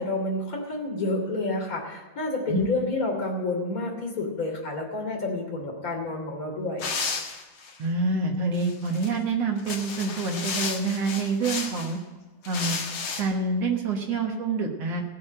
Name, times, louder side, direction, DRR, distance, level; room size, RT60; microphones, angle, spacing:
voice 1, 0.0-6.9, left 2 dB, 25° left, 0 dB, 2.8 m, -29 dB
sound 1, 6.8-7.8 8.5-9.1 9.6-11.9 12.4-13.2, left 5 dB, 45° left, 1.9 m, -32 dB
voice 2, 7.8-12.0 12.5-12.8 13.2-15.0, right 3 dB, 60° right, 2 dB, 1.9 m, -27 dB
17.5 x 7.2 x 7.6 m, 1.2 s
omnidirectional pair, 4.3 m